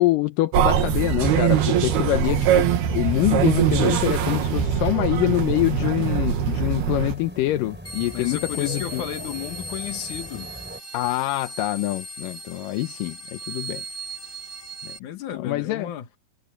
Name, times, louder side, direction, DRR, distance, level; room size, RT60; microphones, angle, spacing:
voice 1, 0.0-9.0 10.9-13.8 14.8-15.0 15.3-15.9, left 17 dB, 75° left, 2.2 m, -25 dB
sound 1, 0.5-7.2, right 9 dB, 80° right, 3.8 m, -22 dB
sound 2, 5.1-10.8, equal, 5° right, 4.3 m, -40 dB
sound 3, 7.8-15.0, right 1 dB, 20° left, 1.9 m, -37 dB
voice 2, 8.1-10.5 15.0-16.1, left 11 dB, 60° left, 2.7 m, -33 dB
omnidirectional pair, 4.4 m